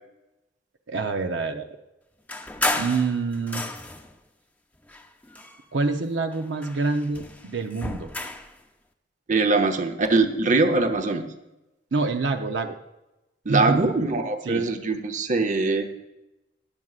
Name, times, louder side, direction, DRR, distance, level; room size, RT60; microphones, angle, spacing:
voice 1, 0.9-1.7 2.7-3.6 5.7-8.1 11.9-12.8 13.5-13.8 14.4-14.7, right 3 dB, 70° right, 6 dB, 0.7 m, -26 dB
sound 1, 2.3-4.2 4.8-6.0 6.3-8.6, left 2 dB, 10° left, 0.6 m, -32 dB
voice 2, 9.3-11.3 13.4-16.0, right 3 dB, 40° right, 7 dB, 0.8 m, -22 dB
20.5 x 7.5 x 2.4 m, 0.97 s
head